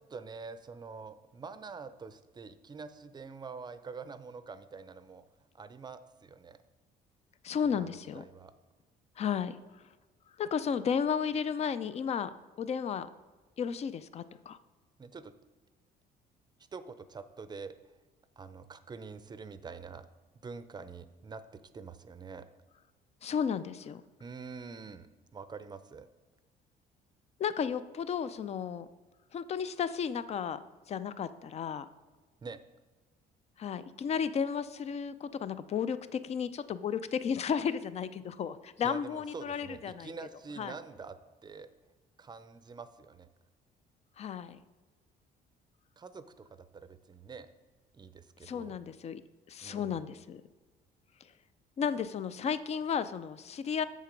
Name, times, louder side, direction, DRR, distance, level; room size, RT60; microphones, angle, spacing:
voice 1, 0.0-5.2 5.5-6.6 7.6-8.5 15.0-15.3 16.7-17.8 18.4-20.1 20.4-22.5 24.2-25.1 25.3-26.1 32.4-32.6 38.8-41.7 42.2-43.3 46.0-47.5 47.9-48.8 49.6-50.0, right 5 dB, 25° right, 12 dB, 0.6 m, -46 dB
voice 2, 7.4-8.2 9.2-9.6 10.4-13.1 13.6-14.6 23.2-24.0 27.4-28.9 29.3-30.6 30.9-31.9 33.6-40.1 40.6-40.8 44.2-44.6 48.4-49.2 49.5-50.4 51.8-53.8, left 7 dB, 40° left, 14 dB, 0.5 m, -33 dB
7.5 x 6.8 x 5.2 m, 1.3 s
cardioid pair, 110°, 17 cm